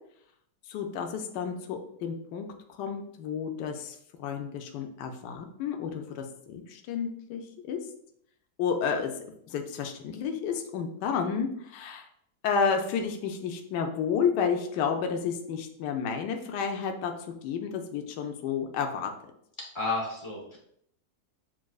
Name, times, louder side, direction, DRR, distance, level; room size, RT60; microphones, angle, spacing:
voice 1, 0.7-7.4 7.7-7.8 8.6-9.1 9.5-12.1 12.4-17.1 17.4-19.1, left 6 dB, 75° left, 4 dB, 1.2 m, -31 dB
voice 2, 19.7-20.6, left 3 dB, 25° left, -3 dB, 0.6 m, -31 dB
7.1 x 2.6 x 2.3 m, 0.70 s
omnidirectional pair, 1.9 m